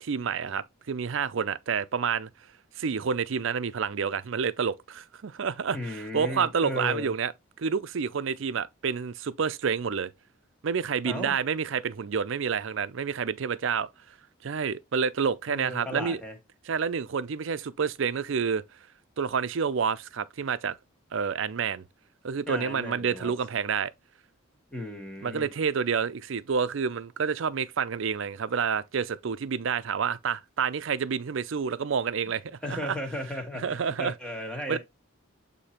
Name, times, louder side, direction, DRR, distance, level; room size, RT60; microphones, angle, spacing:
voice 1, 0.0-2.3 2.8-7.3 7.6-10.1 10.6-13.9 14.4-16.2 16.7-18.6 19.2-20.8 21.1-21.8 22.2-23.9 25.2-32.4 32.7-33.0 33.6-34.1 34.7-34.8, right 6 dB, 65° right, 0.5 m, -29 dB
voice 2, 5.7-7.1 11.0-11.4 15.5-16.4 22.5-23.3 24.7-25.5 32.6-34.8, left 1 dB, 5° left, 1.5 m, -35 dB
8.3 x 2.8 x 4.3 m
head